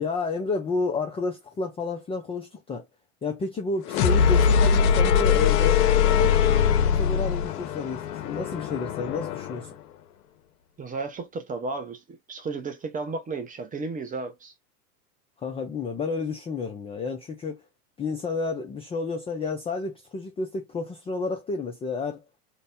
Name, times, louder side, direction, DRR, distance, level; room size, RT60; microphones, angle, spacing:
voice 1, 0.0-2.8 3.2-6.4 6.8-9.7 15.4-17.6 18.0-22.2, left 4 dB, 15° left, 0.4 m, -30 dB
sound 1, 3.9-9.7, left 7 dB, 70° left, 0.9 m, -22 dB
voice 2, 10.8-14.5, right 3 dB, 15° right, 0.8 m, -33 dB
2.8 x 2.5 x 3.5 m
hypercardioid pair, 115°, 47 cm